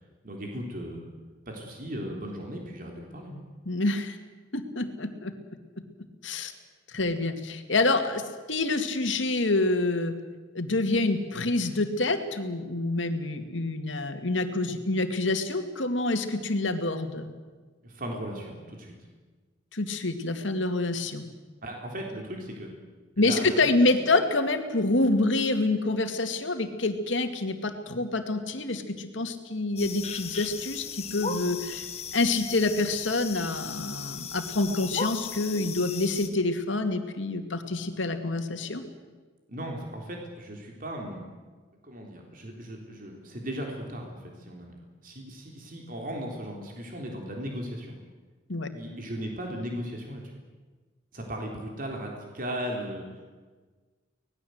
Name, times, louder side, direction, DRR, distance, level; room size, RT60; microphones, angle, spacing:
voice 1, 0.2-1.1 1.5-3.4 17.8-18.9 21.6-22.7 23.2-23.4 39.5-41.3 41.8-44.7 45.0-48.0 48.7-50.2 51.1-53.0, equal, 45° right, 1 dB, 3.8 m, -37 dB
voice 2, 3.7-4.2 4.5-5.3 6.2-6.5 6.9-10.1 10.5-17.3 19.7-21.3 23.2-31.8 32.1-38.8 48.5-48.7, left 2 dB, 75° left, 6 dB, 2.3 m, -27 dB
sound 1, 29.8-36.3, left 6 dB, 35° left, 1.7 m, -37 dB
25.0 x 19.5 x 8.0 m, 1.4 s
head